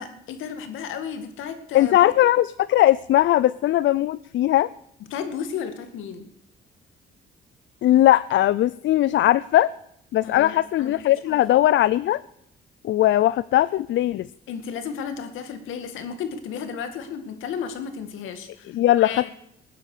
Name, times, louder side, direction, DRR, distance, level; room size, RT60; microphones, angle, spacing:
voice 1, 0.0-2.0 5.1-6.3 10.2-11.4 14.5-19.3, left 7 dB, 85° left, 8 dB, 2.2 m, -34 dB
voice 2, 1.7-4.7 7.8-9.7 10.1-12.2 12.8-14.3 18.7-19.3, left 14 dB, 70° left, 18 dB, 0.5 m, -19 dB
20.0 x 10.5 x 6.7 m, 0.76 s
cardioid pair, 90°, 20 cm